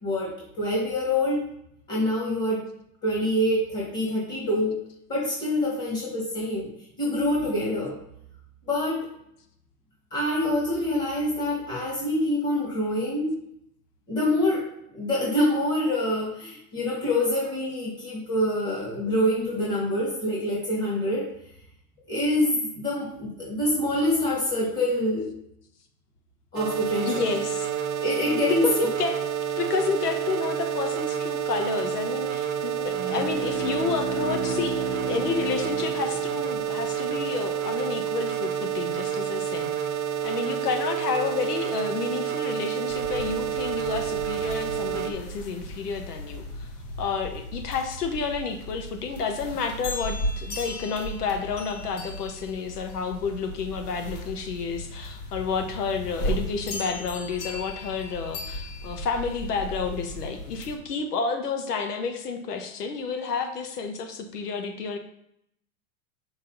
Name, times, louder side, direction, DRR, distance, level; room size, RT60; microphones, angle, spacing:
voice 1, 0.0-1.4 1.9-2.6 3.0-4.8 5.1-6.7 7.0-8.0 8.7-9.1 10.1-13.4 14.1-14.7 14.9-21.3 22.1-25.3 26.5-27.2 28.0-28.7, left 1 dB, 20° left, -5 dB, 2.1 m, -26 dB
sound 1, 26.6-45.1, right 9 dB, 25° right, 0.5 m, -29 dB
voice 2, 27.0-27.7 28.5-29.2 29.6-39.7 40.2-46.7 47.0-65.0, left 5 dB, 90° left, 6 dB, 1.3 m, -30 dB
sound 2, 32.9-36.9, right 2 dB, ahead, 0.8 m, -34 dB
sound 3, 42.9-60.8, equal, 40° left, 1.3 m, -36 dB
6.2 x 4.2 x 3.9 m, 0.75 s
supercardioid pair, 140°, 45 cm